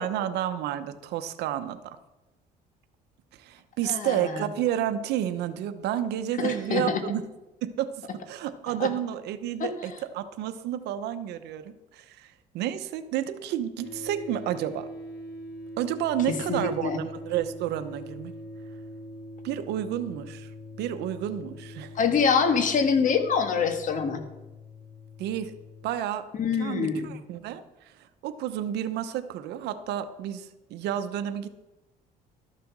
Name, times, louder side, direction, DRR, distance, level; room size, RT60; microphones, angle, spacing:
voice 1, 0.0-2.0 3.3-7.2 7.6-14.9 15.8-18.3 19.4-20.5 20.8-22.0 25.2-25.5 25.8-26.3 26.6-31.6, right 11 dB, 80° right, 11 dB, 0.9 m, -31 dB
voice 2, 3.9-4.4 6.4-7.0 8.8-8.9 9.6-9.7 16.5-17.0 21.9-24.2 26.4-27.1, left 6 dB, 50° left, 8 dB, 1.6 m, -25 dB
sound 1, 13.8-25.9, left 1 dB, 75° left, 2.7 m, -43 dB
13.0 x 6.8 x 6.1 m, 1.0 s
cardioid pair, 110°, 17 cm